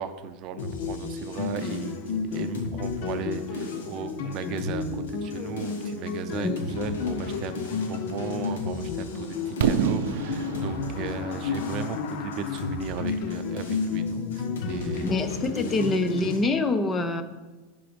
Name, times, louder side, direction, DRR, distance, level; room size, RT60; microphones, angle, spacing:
voice 1, 0.0-6.5 6.8-15.7, right 7 dB, 45° right, 9 dB, 0.6 m, -36 dB
sound 1, 0.6-16.4, left 2 dB, 90° left, 1.5 m, -39 dB
sound 2, 0.6-16.3, left 5 dB, 60° left, 0.7 m, -32 dB
voice 2, 6.3-6.8 15.0-17.2, left 2 dB, 20° left, 10 dB, 0.6 m, -26 dB
Fireworks, 9.6-13.5, right 8 dB, 80° right, 0.6 m, -29 dB
11.0 x 3.9 x 5.2 m, 1.2 s
supercardioid pair, 135°, 0 cm